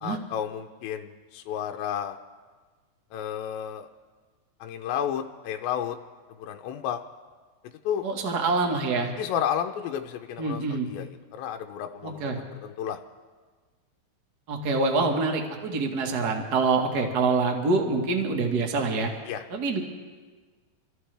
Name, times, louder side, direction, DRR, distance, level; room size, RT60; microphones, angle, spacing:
voice 1, 0.0-2.2 3.1-3.9 4.6-6.0 6.4-7.0 7.9-8.1 9.2-11.1 11.3-13.0 19.3-19.4, left 9 dB, 80° left, 4 dB, 2.3 m, -32 dB
voice 2, 8.0-9.1 10.4-10.9 12.0-12.4 14.5-19.1 19.5-19.8, right 3 dB, 85° right, 1 dB, 0.8 m, -25 dB
27.5 x 14.5 x 3.4 m, 1.4 s
omnidirectional pair, 4.6 m